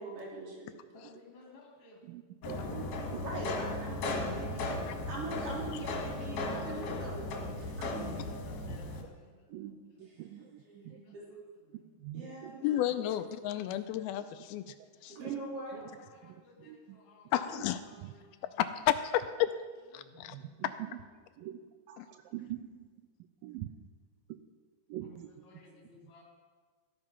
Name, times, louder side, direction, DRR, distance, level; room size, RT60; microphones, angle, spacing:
voice 1, 0.0-0.8 3.2-4.8 5.1-7.3 7.6-8.0 11.1-11.3 12.1-12.7 13.0-13.2 15.1-15.8, right 2 dB, 35° right, -4 dB, 4.0 m, -42 dB
voice 2, 0.9-2.0 8.1-9.6 10.4-11.1 11.8-11.9 15.7-17.3 17.9-18.4 20.0-20.5 25.0-26.2, left 2 dB, 40° left, -1 dB, 3.0 m, -56 dB
voice 3, 2.0-3.4 7.8-7.9 8.7-8.8 9.5-11.2 11.7-12.8 13.6-13.8 15.2-15.4 16.2-17.0 18.0-18.1 20.3-20.9 21.4-22.9 23.4-23.7 24.3-24.4 24.9-25.6 26.0-26.2, right 12 dB, 90° right, 9 dB, 2.0 m, -45 dB
sound 1, 2.4-9.0, left 2 dB, 60° left, 2.9 m, -36 dB
voice 4, 12.6-14.7 15.0-15.2 17.3-17.8 18.4-19.5 19.9-20.4 20.6-20.7 22.0-22.1, left 12 dB, 85° left, 10 dB, 2.3 m, -31 dB
14.5 x 12.5 x 5.7 m, 1.5 s
omnidirectional pair, 4.7 m